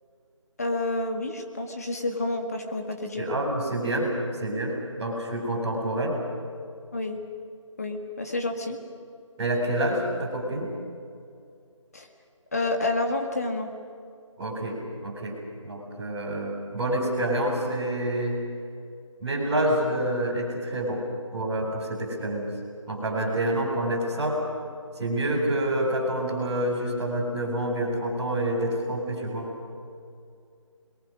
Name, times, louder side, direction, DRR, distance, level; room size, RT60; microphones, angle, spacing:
voice 1, 0.6-3.3 6.9-7.2 7.8-8.8 11.9-12.1 12.5-13.7, left 2 dB, 30° left, 3 dB, 2.0 m, -29 dB
voice 2, 3.2-6.2 9.4-10.7 14.4-15.4 15.6-18.4 19.2-21.0 21.3-22.5 22.9-24.4 25.0-29.5, right 1 dB, 5° right, -11 dB, 4.1 m, -27 dB
29.0 x 22.0 x 6.4 m, 2.4 s
figure-of-eight pair, 180°, 17 cm